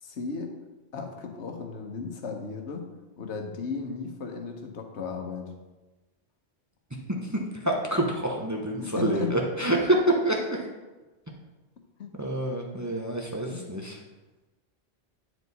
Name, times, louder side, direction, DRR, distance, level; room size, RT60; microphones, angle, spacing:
voice 1, 0.0-0.5 0.9-2.9 3.2-5.5 8.8-9.4 12.0-12.1 13.5-13.7, left 5 dB, 80° left, 4 dB, 1.2 m, -35 dB
voice 2, 7.5-10.7 12.2-14.0, right 1 dB, 15° right, 0 dB, 0.8 m, -27 dB
9.0 x 4.5 x 4.0 m, 1.1 s
omnidirectional pair, 1.2 m